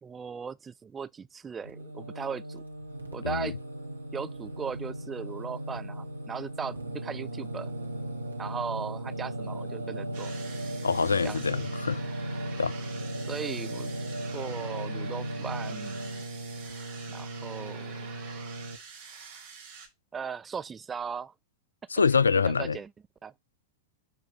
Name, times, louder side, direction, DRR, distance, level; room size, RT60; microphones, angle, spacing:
voice 1, 0.0-2.6 3.1-3.6 4.1-7.7 8.4-10.4 11.2-11.7 13.3-13.9 14.3-16.1 17.1-18.1 20.1-21.3 22.4-22.9 23.2-23.3, right 6 dB, 20° right, 0.3 m, -38 dB
Singing, 1.6-18.8, right 1 dB, 80° right, 1.1 m, -37 dB
voice 2, 3.2-3.6 10.8-12.0 12.6-12.7 21.9-22.8, left 5 dB, 75° left, 0.3 m, -25 dB
sound 1, 10.1-19.9, right 6 dB, 55° right, 3.5 m, -47 dB
7.1 x 4.7 x 3.6 m
figure-of-eight pair, 90°, 0 cm